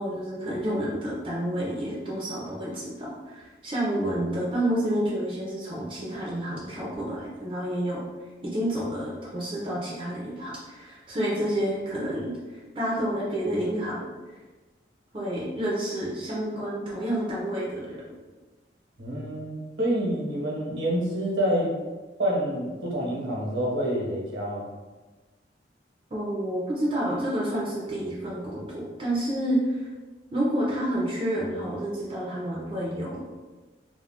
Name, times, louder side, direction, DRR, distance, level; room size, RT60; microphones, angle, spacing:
voice 1, 0.0-8.0 8.4-12.3 12.7-14.1 15.1-18.0 26.1-29.9 30.3-33.2, right 1 dB, 30° right, -5 dB, 0.5 m, -29 dB
voice 2, 19.0-21.8 22.2-24.7, equal, 90° right, -5 dB, 0.9 m, -27 dB
2.4 x 2.1 x 3.5 m, 1.2 s
head